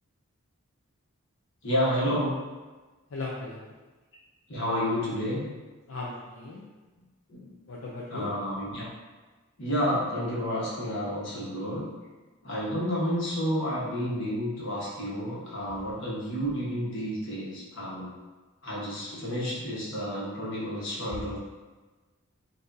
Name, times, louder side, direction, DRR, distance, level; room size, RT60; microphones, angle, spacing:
voice 1, 1.6-2.4 4.5-5.4 7.3-7.5 8.1-8.9 9.6-11.9 12.4-18.1 18.6-21.4, equal, 65° left, -6 dB, 1.3 m, -30 dB
voice 2, 3.1-3.7 5.9-6.6 7.7-8.3 15.7-15.8, left 3 dB, 80° left, -5 dB, 0.6 m, -37 dB
5.8 x 2.7 x 2.7 m, 1.2 s
head